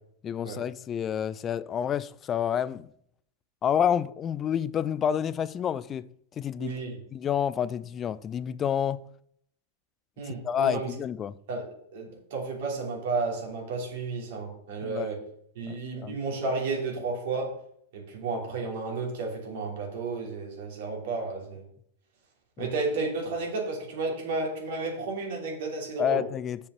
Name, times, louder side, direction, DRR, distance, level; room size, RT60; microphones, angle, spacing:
voice 1, 0.2-2.9 3.6-6.1 6.4-6.8 7.1-9.0 10.3-11.4 14.8-15.1 15.7-16.1 22.6-22.7 26.0-26.6, left 9 dB, 25° left, 0.4 m, -29 dB
voice 2, 6.6-7.0 10.2-10.9 11.5-15.2 15.5-17.6 17.9-21.6 22.6-26.2, right 3 dB, 55° right, 3.0 m, -32 dB
6.8 x 5.5 x 6.7 m
figure-of-eight pair, 90°, 0 cm